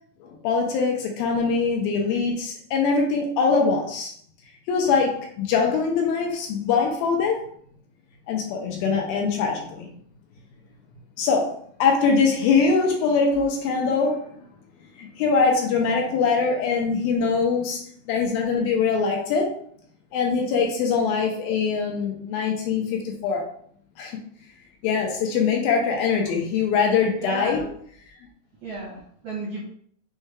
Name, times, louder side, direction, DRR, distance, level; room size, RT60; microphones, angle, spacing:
voice 1, 0.2-4.1 4.7-7.5 8.3-9.9 11.2-11.5 11.8-14.3 15.0-17.8 18.1-19.5 20.1-23.4 24.0-24.2 24.8-27.6, left 5 dB, 80° left, 1 dB, 2.3 m, -22 dB
voice 2, 27.2-27.7 28.6-29.6, right 2 dB, 70° right, -5 dB, 1.7 m, -33 dB
6.4 x 2.2 x 3.2 m, 0.62 s
omnidirectional pair, 4.5 m